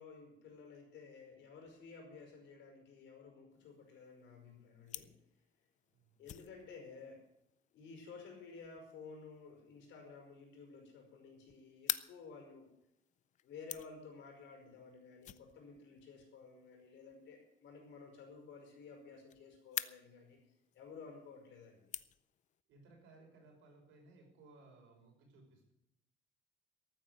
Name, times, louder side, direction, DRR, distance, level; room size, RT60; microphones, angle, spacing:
voice 1, 0.0-5.1 6.2-7.2 7.7-12.7 13.4-20.4 20.7-21.9, left 4 dB, 65° left, 2 dB, 5.1 m, -54 dB
sound 1, 3.5-22.6, left 11 dB, 35° left, 0.5 m, -50 dB
voice 2, 5.9-6.3 22.7-25.7, right 2 dB, 75° right, 1 dB, 5.8 m, -61 dB
14.0 x 9.0 x 8.2 m, 0.81 s
cardioid pair, 170°, 20 cm